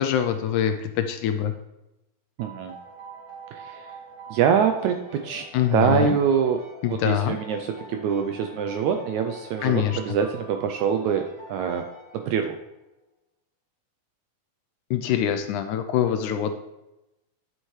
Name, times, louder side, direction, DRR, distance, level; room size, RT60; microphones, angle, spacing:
voice 1, 0.0-1.5 5.5-6.2 6.8-7.4 9.6-10.0 14.9-16.5, left 10 dB, 80° left, 8 dB, 1.9 m, -24 dB
sound 1, 2.4-12.8, right 2 dB, 35° right, 1.8 m, -45 dB
voice 2, 2.4-2.8 3.5-3.9 4.3-6.6 6.9-11.9 12.1-12.6, right 7 dB, 85° right, 6 dB, 1.7 m, -25 dB
11.0 x 7.3 x 3.2 m, 0.95 s
omnidirectional pair, 3.8 m